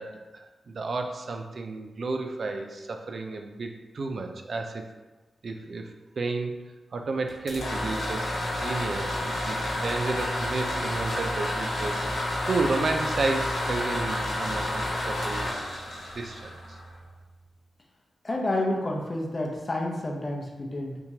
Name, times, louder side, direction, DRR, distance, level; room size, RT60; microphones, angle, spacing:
voice 1, 0.0-4.8 5.4-5.9 6.2-6.6 6.9-12.0 12.5-15.5 16.1-16.8, right 3 dB, 65° right, 5 dB, 0.3 m, -32 dB
sound 1, 7.3-17.1, left 1 dB, 85° left, 0.9 m, -30 dB
voice 2, 18.2-21.0, left 1 dB, 40° left, 0 dB, 0.7 m, -29 dB
3.5 x 2.9 x 2.8 m, 1.2 s
cardioid pair, 45°, 0 cm